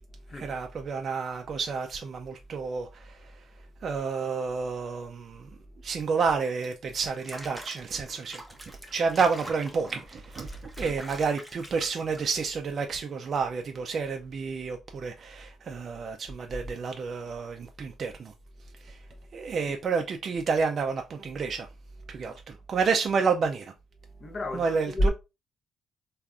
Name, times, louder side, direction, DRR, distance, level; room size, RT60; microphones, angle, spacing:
voice 1, 0.3-3.4 3.8-5.5 5.8-8.4 8.9-18.3 18.8-19.0 19.3-21.7 22.1-23.7 24.5-25.1, right 5 dB, 50° right, 0.3 m, -30 dB
Water / Bathtub (filling or washing), 7.1-12.6, right 1 dB, 10° right, 0.7 m, -45 dB
voice 2, 24.1-25.1, equal, 40° left, 0.7 m, -29 dB
3.4 x 2.4 x 2.3 m
cardioid pair, 85°, 0 cm